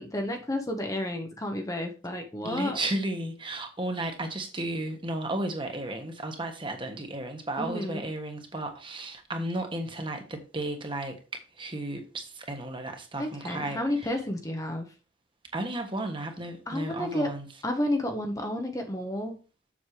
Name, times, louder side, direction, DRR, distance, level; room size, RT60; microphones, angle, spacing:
voice 1, 0.0-2.8 7.6-8.0 13.2-14.9 16.7-17.3 17.6-19.4, left 1 dB, 15° left, 0.9 m, -31 dB
voice 2, 2.4-11.2 11.6-14.1 15.5-17.5, right 1 dB, 25° right, 1.4 m, -34 dB
7.3 x 7.3 x 3.3 m
head